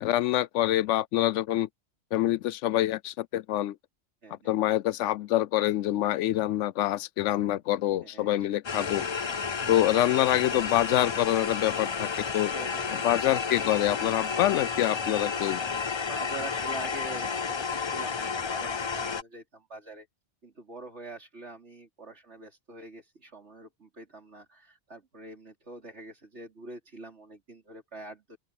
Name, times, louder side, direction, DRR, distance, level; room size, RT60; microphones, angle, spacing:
voice 1, 0.0-1.7 2.1-3.7 4.5-9.0 9.7-12.5 13.0-15.6, left 14 dB, 85° left, 0.9 m, -26 dB
voice 2, 4.2-4.6 8.0-8.5 8.7-9.1 12.5-12.9 16.1-20.1 20.4-28.4, right 2 dB, 70° right, 3.9 m, -45 dB
sound 1, 8.6-19.2, left 5 dB, 35° left, 0.4 m, -31 dB
open air
omnidirectional pair, 1.2 m